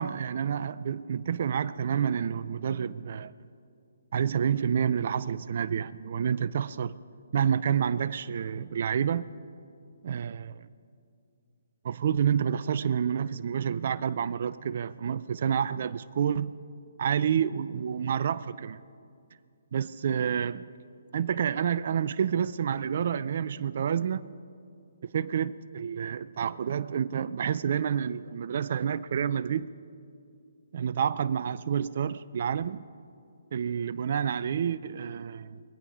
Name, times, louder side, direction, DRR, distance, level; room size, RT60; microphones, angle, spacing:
voice 1, 0.0-3.3 4.1-7.0 7.3-9.3 10.0-10.6 11.8-16.5 17.0-18.8 19.7-20.7 21.1-24.2 25.0-29.7 30.7-32.8 33.5-35.6, right 8 dB, 55° right, 0.4 m, -29 dB
23.0 x 8.9 x 5.6 m
hypercardioid pair, 145°, 0 cm